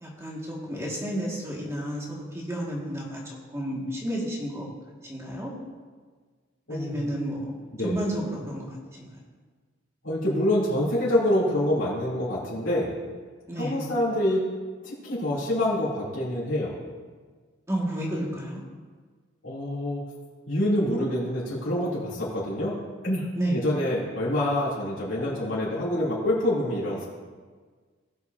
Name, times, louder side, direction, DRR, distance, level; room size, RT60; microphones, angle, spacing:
voice 1, 0.0-3.2 3.5-4.7 5.0-5.5 6.7-7.5 7.8-9.1 13.5-13.8 17.7-18.6 23.4-23.6, right 1 dB, 15° right, -4 dB, 1.9 m, -31 dB
voice 2, 6.7-7.1 7.8-8.0 10.0-12.9 13.6-14.4 14.8-16.7 19.4-20.0 20.5-22.8 23.0-23.2 23.5-27.1, left 1 dB, 90° left, -9 dB, 3.0 m, -26 dB
18.0 x 7.0 x 2.7 m, 1.5 s
head